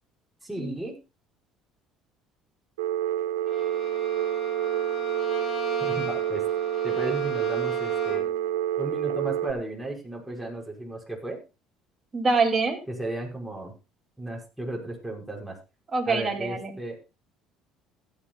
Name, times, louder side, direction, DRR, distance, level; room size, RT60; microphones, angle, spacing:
voice 1, 0.4-0.9 5.8-6.4 6.8-8.2 8.8-11.4 12.9-13.7 14.2-15.6 16.1-17.0, right 2 dB, 5° right, -1 dB, 5.7 m, -34 dB
Telephone, 2.8-9.5, right 11 dB, 85° right, 1.1 m, -28 dB
Bowed string instrument, 3.4-8.4, left 2 dB, 50° left, 4.4 m, -38 dB
voice 2, 12.1-12.8 15.9-16.7, right 4 dB, 30° right, 1 dB, 3.0 m, -25 dB
16.5 x 11.0 x 2.4 m, 0.28 s
hypercardioid pair, 65°, 0 cm